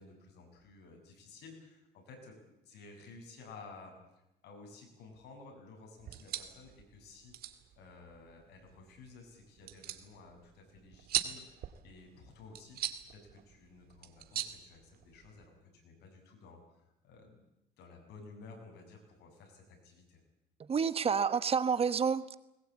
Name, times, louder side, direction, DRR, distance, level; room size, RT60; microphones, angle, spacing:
voice 1, 0.0-4.0 4.4-7.3 7.8-11.6 11.8-17.5 17.8-20.2, left 3 dB, 75° left, 3 dB, 7.5 m, -54 dB
sound 1, 6.0-15.4, right 11 dB, 65° right, 2.2 m, -42 dB
voice 2, 20.6-22.4, right 6 dB, 35° right, 14 dB, 1.1 m, -29 dB
21.0 x 20.0 x 8.7 m, 0.90 s
cardioid pair, 110°, 17 cm